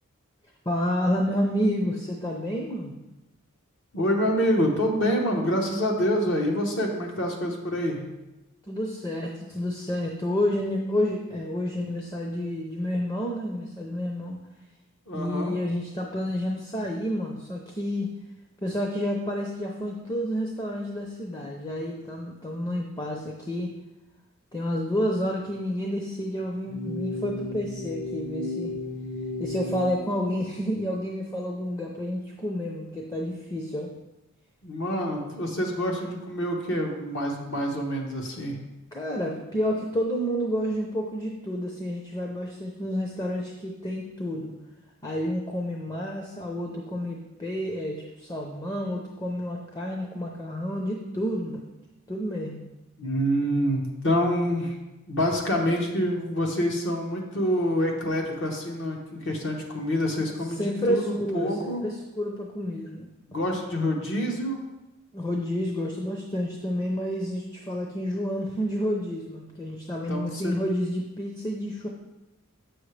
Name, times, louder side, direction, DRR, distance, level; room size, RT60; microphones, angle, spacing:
voice 1, 0.7-2.9 8.7-14.4 15.1-18.1 18.6-23.7 24.5-28.7 29.4-33.9 38.9-44.5 45.0-51.6 52.1-52.6 60.5-63.4 65.1-71.9, equal, 20° left, 0 dB, 0.6 m, -30 dB
voice 2, 3.9-8.0 15.1-15.5 34.6-38.6 53.0-54.8 55.1-61.8 63.3-64.6 70.1-70.6, equal, 60° left, 1 dB, 1.0 m, -26 dB
sound 1, 26.7-29.9, left 1 dB, 40° left, 1.1 m, -33 dB
7.5 x 6.3 x 3.2 m, 1.0 s
head